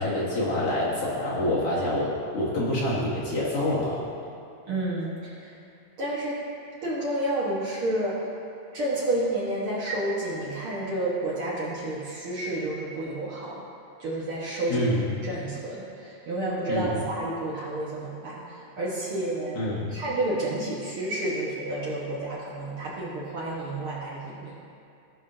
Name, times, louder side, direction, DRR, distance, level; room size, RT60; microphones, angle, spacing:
voice 1, 0.0-4.0 14.7-15.0 16.7-17.0 19.5-19.9, left 1 dB, 55° left, -7 dB, 2.2 m, -26 dB
voice 2, 4.7-5.6 6.0-6.4 6.8-8.3 8.7-13.7 14.0-14.9 15.2-19.6 19.9-24.5, right 1 dB, 55° right, -6 dB, 1.7 m, -30 dB
17.0 x 6.0 x 2.6 m, 2.6 s
omnidirectional pair, 3.4 m